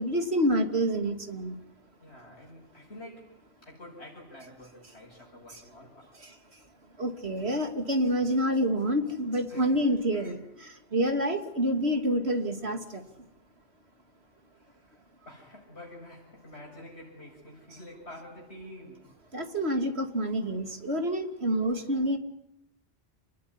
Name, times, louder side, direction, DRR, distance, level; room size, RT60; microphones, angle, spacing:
voice 1, 0.0-1.6 6.2-6.3 7.0-13.0 19.3-22.2, equal, 70° right, 6 dB, 3.1 m, -28 dB
voice 2, 2.0-3.3 3.6-6.3 9.5-10.4 14.5-19.2, left 1 dB, 80° left, -3 dB, 7.3 m, -48 dB
29.0 x 20.5 x 9.8 m, 0.82 s
omnidirectional pair, 1.1 m